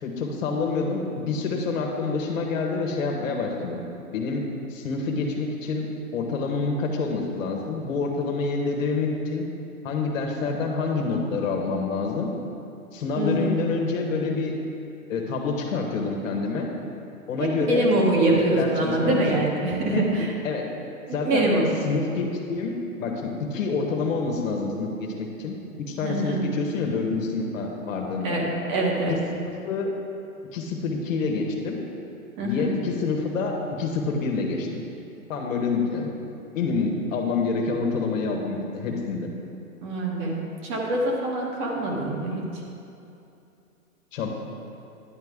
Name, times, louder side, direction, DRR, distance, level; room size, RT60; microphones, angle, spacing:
voice 1, 0.0-3.8 4.1-5.9 6.1-9.5 9.8-12.3 12.9-14.5 15.1-16.7 17.3-17.9 18.2-19.4 19.9-20.1 20.4-20.7 21.1-21.5 21.8-25.6 25.9-28.4 29.1-29.2 29.5-29.9 30.5-31.8 32.4-34.7 35.3-36.1 36.5-39.3 44.1-44.4, left 4 dB, 60° left, 1 dB, 1.5 m, -27 dB
voice 2, 13.2-13.5 17.4-20.3 21.1-21.7 26.0-26.4 28.2-28.4 28.7-29.2 32.4-32.7 39.8-42.4, right 2 dB, 30° right, -2 dB, 1.3 m, -24 dB
10.5 x 7.8 x 3.7 m, 2.7 s
hypercardioid pair, 140°, 44 cm